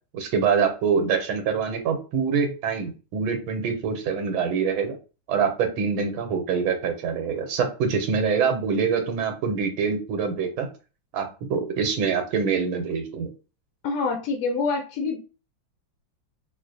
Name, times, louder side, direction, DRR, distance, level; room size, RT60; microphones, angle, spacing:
voice 1, 0.1-5.0 5.3-10.7 11.1-13.3, right 6 dB, 85° right, 5 dB, 1.5 m, -25 dB
voice 2, 13.8-15.2, left 4 dB, 75° left, 3 dB, 0.9 m, -26 dB
3.9 x 2.4 x 2.6 m, 0.34 s
omnidirectional pair, 2.2 m